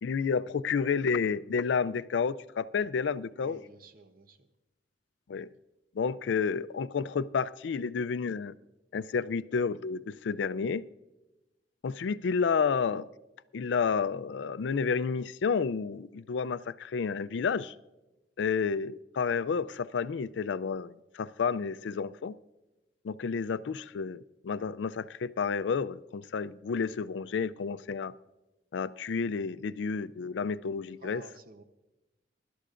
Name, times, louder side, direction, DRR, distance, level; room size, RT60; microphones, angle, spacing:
voice 1, 0.0-3.6 5.3-5.5 6.0-8.5 8.9-10.8 11.8-13.1 13.5-17.7 18.4-22.3 23.0-28.1 28.7-31.2, left 5 dB, 90° left, 16 dB, 0.4 m, -30 dB
voice 2, 3.4-4.5 18.7-18.8 31.0-31.6, right 2 dB, 55° right, 9 dB, 0.8 m, -52 dB
23.0 x 12.0 x 2.5 m, 1.0 s
head